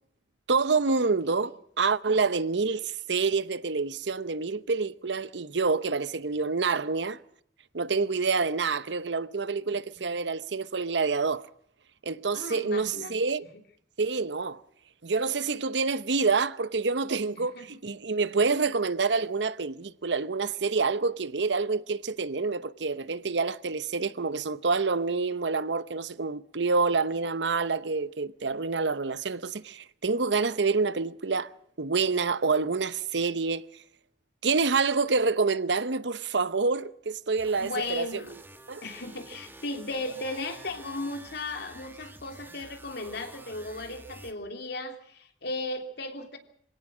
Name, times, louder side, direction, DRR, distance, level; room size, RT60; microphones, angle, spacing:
voice 1, 0.5-7.2 7.7-11.5 12.0-13.5 14.0-14.6 15.0-31.5 31.8-33.7 34.4-38.1 38.7-38.8, right 4 dB, 75° right, 0.9 m, -27 dB
voice 2, 12.3-13.1 17.5-17.7 37.6-38.3 38.8-46.4, left 2 dB, 65° left, 3.1 m, -36 dB
sound 1, 37.4-44.3, right 2 dB, 10° right, 2.0 m, -49 dB
25.5 x 17.5 x 6.2 m
head